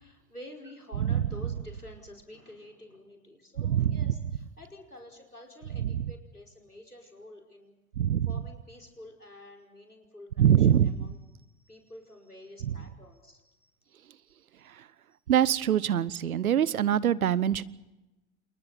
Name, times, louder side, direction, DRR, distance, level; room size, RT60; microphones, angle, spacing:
voice 1, 0.0-7.7 8.3-11.2 11.6-13.7, left 1 dB, 90° left, 5 dB, 5.2 m, -49 dB
voice 2, 3.6-4.1 5.8-6.1 8.0-8.3 10.4-11.1 12.6-12.7 14.7-14.8 15.3-17.6, right 10 dB, 70° right, 21 dB, 1.0 m, -24 dB
29.5 x 28.5 x 4.2 m, 1.0 s
figure-of-eight pair, 80°, 44 cm